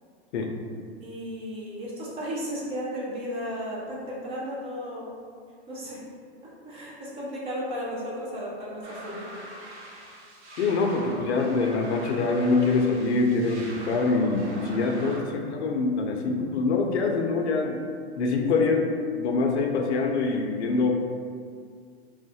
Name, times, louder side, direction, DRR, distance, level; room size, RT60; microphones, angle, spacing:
voice 1, 1.0-5.2 5.7-6.0 6.4-9.4 18.7-18.8, equal, 20° right, -5 dB, 0.3 m, -34 dB
sound 1, 8.8-15.2, right 1 dB, 90° right, 0.7 m, -42 dB
voice 2, 10.6-17.8 18.2-18.9 19.1-20.9, left 3 dB, 85° left, 2 dB, 0.5 m, -24 dB
2.3 x 2.1 x 2.7 m, 2.1 s
hypercardioid pair, 120°, 33 cm